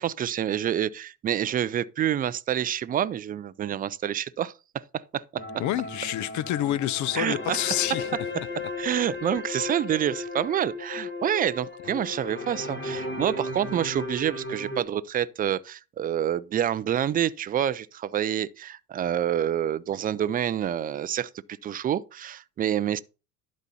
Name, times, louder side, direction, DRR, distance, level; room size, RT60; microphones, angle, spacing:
voice 1, 0.0-5.4 7.1-7.6 8.8-21.3 21.6-23.0, right 10 dB, 20° right, 0.4 m, -27 dB
sound 1, 5.4-14.8, left 2 dB, 25° left, 1.7 m, -35 dB
voice 2, 5.6-8.1 11.9-12.0, left 13 dB, 40° left, 0.5 m, -28 dB
11.5 x 4.2 x 5.5 m
hypercardioid pair, 75°, 48 cm